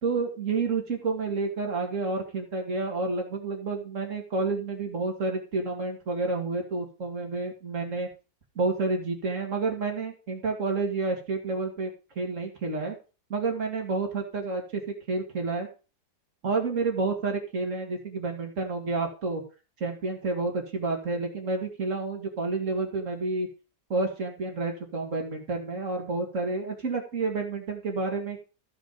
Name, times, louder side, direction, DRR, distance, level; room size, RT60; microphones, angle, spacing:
voice 1, 0.0-8.1 8.6-13.0 13.3-15.7 16.4-19.4 19.8-23.5 23.9-28.4, right 3 dB, 50° right, 2 dB, 2.6 m, -29 dB
15.0 x 5.0 x 5.1 m, 0.33 s
omnidirectional pair, 1.7 m